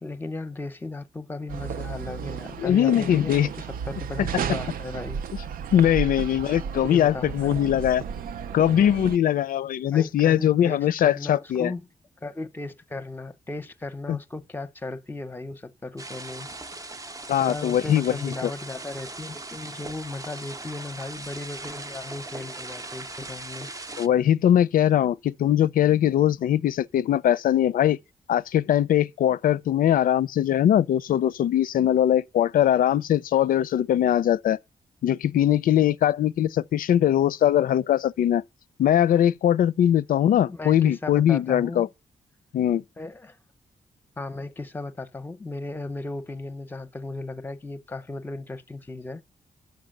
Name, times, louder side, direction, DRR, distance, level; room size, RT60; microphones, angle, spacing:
voice 1, 0.0-5.2 6.8-7.6 9.8-11.8 12.2-16.5 17.4-23.7 40.5-41.9 43.0-43.4 44.2-49.2, left 2 dB, 15° left, 0.7 m, -36 dB
sound 1, 1.5-9.2, right 7 dB, 80° right, 0.5 m, -33 dB
voice 2, 2.6-3.5 4.2-4.3 5.7-8.0 8.5-11.7 14.1-14.2 17.3-18.5 24.0-28.0 28.3-34.6 35.0-38.4 38.8-41.9 42.5-42.8, left 11 dB, 75° left, 0.5 m, -21 dB
sound 2, 16.0-24.1, right 2 dB, 25° right, 0.5 m, -39 dB
10.5 x 7.1 x 6.4 m
wide cardioid pair, 145°, 15 cm